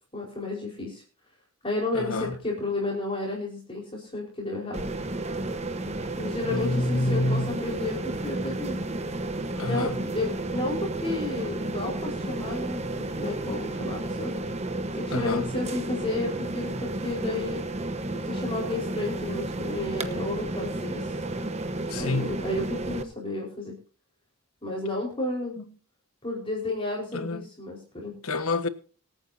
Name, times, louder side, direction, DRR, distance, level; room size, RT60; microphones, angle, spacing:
voice 1, 0.1-1.0 1.6-4.8 6.2-8.8 9.6-14.3 14.9-17.6 18.1-21.1 21.9-23.8 24.6-25.5 26.2-28.1, left 2 dB, 25° left, 4.7 m, -32 dB
voice 2, 1.9-2.3 6.4-7.6 9.6-10.0 15.1-15.5 21.9-22.3 25.6-25.7 27.1-27.4 28.2-28.7, left 2 dB, 75° left, 1.4 m, -28 dB
air ventilation system outside in the rain, 4.7-23.0, right 2 dB, 30° right, 1.1 m, -32 dB
26.0 x 9.2 x 2.8 m
head